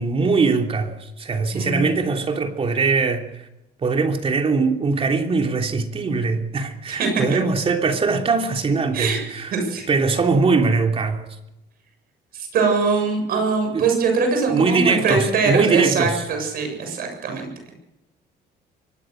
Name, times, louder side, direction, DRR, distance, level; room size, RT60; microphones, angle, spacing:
voice 1, 0.0-3.3 3.8-9.5 9.9-11.2 13.7-13.8 14.5-16.2, right 4 dB, 35° right, 4 dB, 3.2 m, -21 dB
voice 2, 1.5-1.9 6.9-7.2 8.9-9.2 9.5-9.9 12.3-17.7, right 4 dB, 60° right, 4 dB, 7.3 m, -22 dB
23.5 x 19.0 x 6.5 m, 0.90 s
cardioid pair, 110°, 17 cm